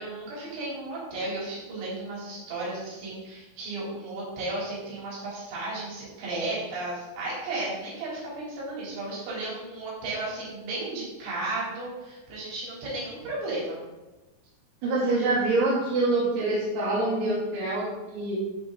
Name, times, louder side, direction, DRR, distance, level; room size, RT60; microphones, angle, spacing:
voice 1, 0.0-13.8, right 2 dB, 65° right, -6 dB, 6.1 m, -34 dB
voice 2, 14.8-18.4, right 2 dB, 85° right, -7 dB, 5.2 m, -25 dB
16.5 x 5.7 x 4.0 m, 1.1 s
omnidirectional pair, 5.9 m